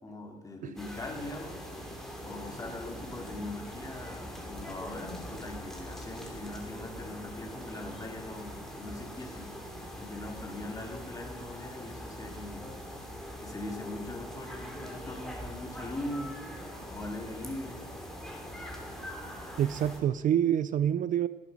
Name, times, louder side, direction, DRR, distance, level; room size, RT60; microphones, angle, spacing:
voice 1, 0.0-1.6 2.2-9.5 10.0-12.8 13.4-16.4 16.9-17.8, left 2 dB, 20° left, 2 dB, 2.6 m, -41 dB
sound 1, 0.8-20.0, equal, ahead, 2.7 m, -42 dB
voice 2, 19.6-21.3, right 10 dB, 50° right, 15 dB, 0.5 m, -26 dB
18.0 x 8.3 x 5.3 m, 1.2 s
cardioid pair, 110°, 17 cm